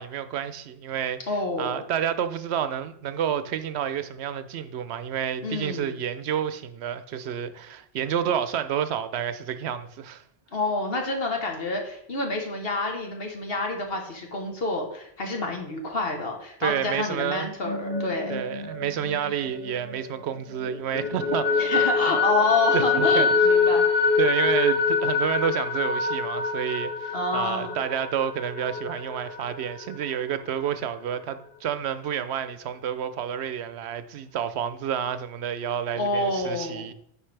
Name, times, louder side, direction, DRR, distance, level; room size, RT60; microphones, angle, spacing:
voice 1, 0.0-1.2 1.6-10.2 16.6-17.5 18.3-21.6 22.7-23.3 24.2-36.9, right 9 dB, 80° right, 0.9 m, -29 dB
voice 2, 1.3-1.8 5.4-5.9 10.5-18.4 21.6-23.8 27.1-27.8 35.9-36.9, left 2 dB, 65° left, 1.4 m, -28 dB
sound 1, 17.5-20.3 20.7-30.1, left 4 dB, 10° left, 1.7 m, -25 dB
10.0 x 5.2 x 3.3 m
omnidirectional pair, 1.1 m